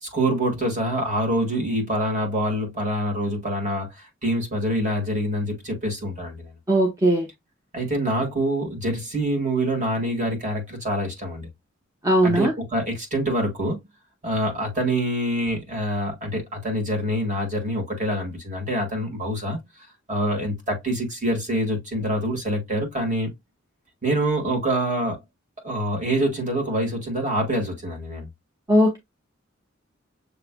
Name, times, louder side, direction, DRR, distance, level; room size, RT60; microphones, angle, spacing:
voice 1, 0.0-6.5 7.7-11.5 12.2-13.9 14.2-19.6 20.1-23.4 24.0-25.2 25.6-28.3, right 1 dB, 40° right, 1.8 m, -25 dB
voice 2, 6.7-7.3 12.0-12.5 28.7-29.0, equal, 15° right, 0.9 m, -18 dB
7.0 x 3.2 x 2.2 m
head